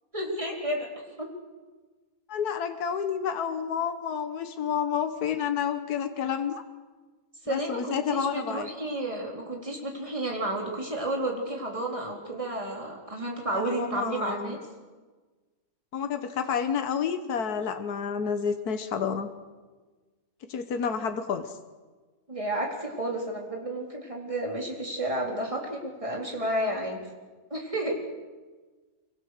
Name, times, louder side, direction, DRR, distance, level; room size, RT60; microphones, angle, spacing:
voice 1, 0.1-0.9 1.2-1.3 7.4-14.6 22.3-27.0 27.5-28.0, right 1 dB, 20° right, 0 dB, 3.9 m, -31 dB
voice 2, 2.3-6.6 7.5-8.7 13.5-14.6 15.9-19.3 20.5-21.5, left 7 dB, 85° left, 8 dB, 1.7 m, -30 dB
25.0 x 24.5 x 6.5 m, 1.3 s
omnidirectional pair, 1.6 m